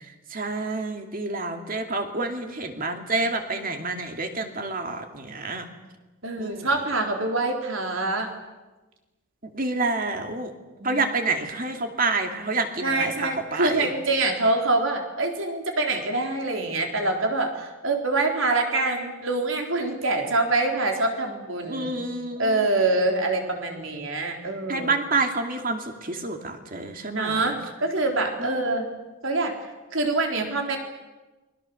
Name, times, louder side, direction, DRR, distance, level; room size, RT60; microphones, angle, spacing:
voice 1, 0.3-5.6 6.4-6.7 9.4-10.5 10.8-13.9 21.7-22.7 24.7-27.4 28.4-28.5, right 3 dB, 40° right, 5 dB, 2.6 m, -28 dB
voice 2, 6.2-8.3 10.8-11.0 12.8-21.9 22.4-24.9 27.1-28.9 29.2-30.8, right 2 dB, 65° right, 3 dB, 3.9 m, -25 dB
29.5 x 21.5 x 7.1 m, 1.1 s
head